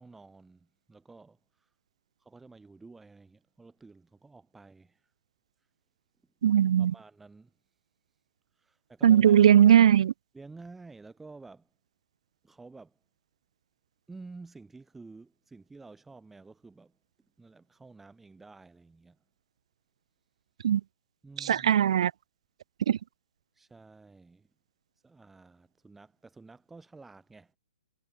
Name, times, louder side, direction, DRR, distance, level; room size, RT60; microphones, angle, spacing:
voice 1, 0.0-1.7 2.2-5.1 6.8-7.5 8.6-9.4 10.3-11.7 12.4-13.0 14.1-17.0 17.4-19.2 21.2-21.9 23.5-24.5 25.0-27.6, right 3 dB, 5° right, 7.3 m, -51 dB
voice 2, 6.4-6.9 9.0-10.1 20.6-20.8 21.4-22.1 22.9-23.0, right 9 dB, 50° right, 0.4 m, -19 dB
hypercardioid pair, 165°, 4 cm